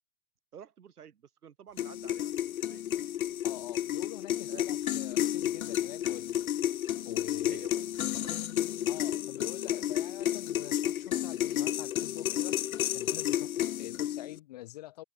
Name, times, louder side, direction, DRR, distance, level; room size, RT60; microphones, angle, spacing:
voice 1, 0.5-2.3 2.7-2.9 4.5-4.7 7.4-8.4, right 8 dB, 75° right, 6.7 m, -50 dB
sound 1, 1.8-14.4, left 11 dB, 65° left, 1.0 m, -31 dB
voice 2, 3.4-6.4 7.0-7.7 8.0-8.1 8.9-12.6 12.9-15.0, left 16 dB, 25° left, 1.0 m, -46 dB
hypercardioid pair, 165°, 45 cm